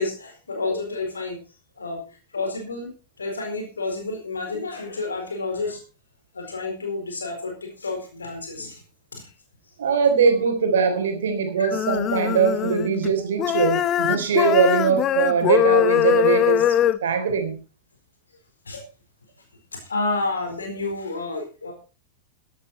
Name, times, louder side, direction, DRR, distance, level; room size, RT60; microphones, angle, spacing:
voice 1, 0.0-1.4 1.8-2.0 2.3-2.9 3.2-5.8 6.3-8.8 9.1-9.2 11.6-11.7 18.7-18.8 19.7-21.7, left 3 dB, 75° left, 3 dB, 4.3 m, -30 dB
voice 2, 9.8-16.6 17.0-17.6, right 6 dB, 65° right, 6 dB, 3.6 m, -21 dB
sound 1, 11.7-13.1 13.4-17.0, left 11 dB, 30° left, 0.8 m, -21 dB
14.5 x 11.5 x 4.3 m, 0.34 s
figure-of-eight pair, 90°, 0 cm